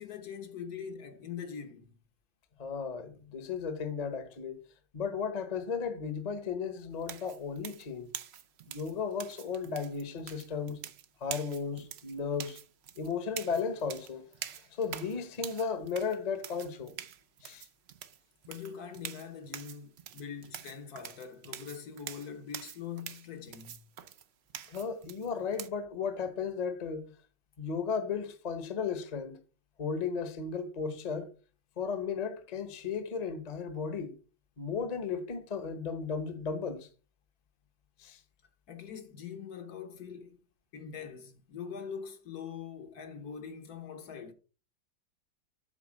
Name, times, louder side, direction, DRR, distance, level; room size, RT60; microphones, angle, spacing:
voice 1, 0.0-2.0 18.5-23.9 38.7-40.4 40.7-44.3, left 7 dB, 60° left, 1.4 m, -43 dB
voice 2, 2.6-4.6 4.9-8.1 8.7-10.8 11.2-12.6 13.0-14.2 14.8-16.9 17.4-17.6 24.7-27.0 27.6-29.4 29.8-31.3 31.8-34.1 34.6-36.9 38.0-38.2, left 6 dB, 30° left, 0.9 m, -35 dB
sound 1, 7.0-25.7, right 9 dB, 80° right, 0.5 m, -45 dB
8.1 x 4.1 x 6.2 m
omnidirectional pair, 1.9 m